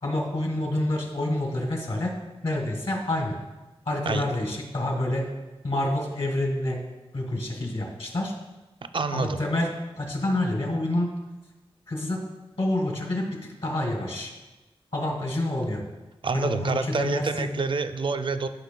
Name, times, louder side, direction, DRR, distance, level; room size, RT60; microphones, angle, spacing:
voice 1, 0.0-2.1 2.4-3.4 3.8-5.3 5.6-6.8 7.1-8.3 9.1-9.7 10.0-11.1 11.9-12.2 12.6-14.3 14.9-15.8 16.3-17.5, left 1 dB, 65° left, 1 dB, 1.6 m, -28 dB
voice 2, 8.9-9.4 16.2-18.5, right 4 dB, 55° right, 9 dB, 0.4 m, -27 dB
12.0 x 5.1 x 2.2 m, 1.1 s
wide cardioid pair, 80°, 10 cm